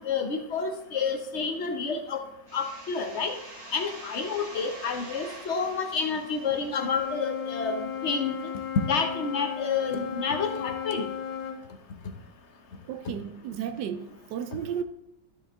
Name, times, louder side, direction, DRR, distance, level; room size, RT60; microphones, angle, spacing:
voice 1, 0.0-2.2 2.5-3.3 3.7-8.3 8.9-11.1, left 5 dB, 55° left, 0.8 m, -29 dB
sound 1, 2.5-8.0, right 2 dB, 40° right, 1.6 m, -46 dB
Wind instrument woodwind instrument, 6.7-11.6, left 8 dB, 80° left, 1.9 m, -35 dB
voice 2, 12.9-14.8, right 8 dB, 75° right, 1.1 m, -33 dB
12.5 x 5.2 x 3.5 m
omnidirectional pair, 2.0 m